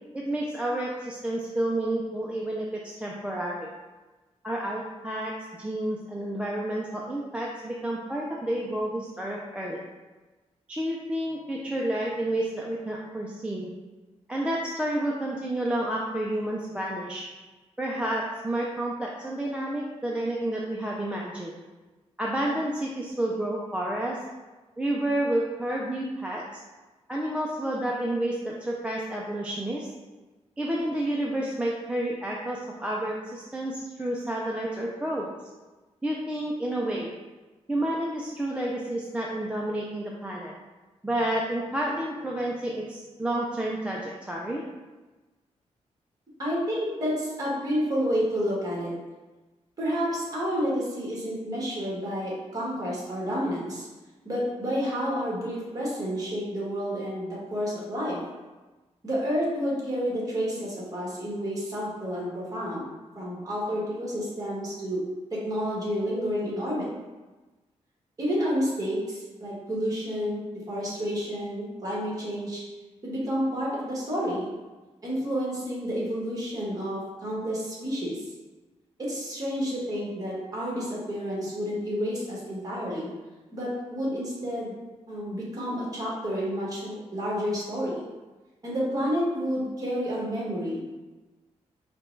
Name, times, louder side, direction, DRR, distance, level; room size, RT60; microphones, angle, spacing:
voice 1, 0.1-3.7 4.4-9.8 10.7-13.7 14.3-17.3 17.8-21.5 22.2-24.3 24.8-26.5 27.1-29.9 30.6-35.3 36.0-37.1 37.7-40.5 41.0-44.6, right 1 dB, 10° right, -4 dB, 0.4 m, -30 dB
voice 2, 46.4-48.9 49.8-53.9 54.2-58.2 59.0-62.9 63.1-65.0 65.3-66.9 68.2-72.6 73.0-74.5 75.0-78.2 79.0-83.1 83.5-84.7 85.1-88.0 88.6-91.1, equal, 30° right, -5 dB, 1.5 m, -30 dB
4.9 x 2.3 x 4.5 m, 1.2 s
wide cardioid pair, 140°, 12 cm